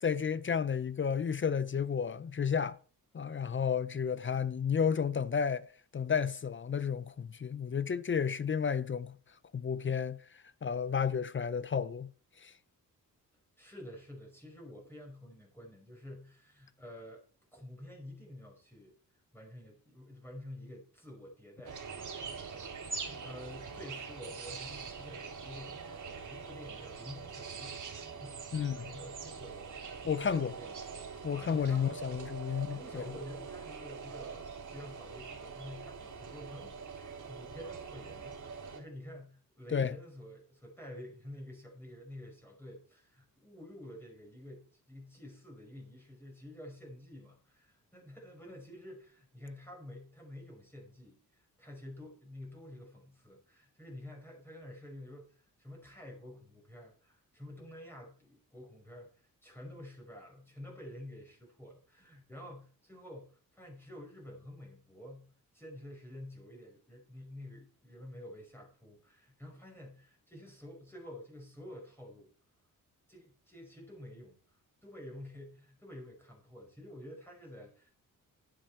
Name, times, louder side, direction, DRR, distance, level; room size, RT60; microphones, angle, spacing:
voice 1, 0.0-2.8 3.1-5.7 5.9-9.2 9.5-12.1 12.4-12.5 28.5-28.8 30.0-30.5 31.2-33.0 39.7-39.9, left 7 dB, 35° left, 0.6 m, -32 dB
voice 2, 13.6-17.2 17.5-18.9 19.3-27.8 28.2-30.8 31.3-32.0 32.3-72.3 73.1-74.4 74.8-77.9, left 1 dB, 5° left, 5.3 m, -49 dB
sound 1, 21.6-38.8, right 5 dB, 55° right, 3.1 m, -44 dB
10.5 x 9.6 x 4.4 m
cardioid pair, 85°, 35 cm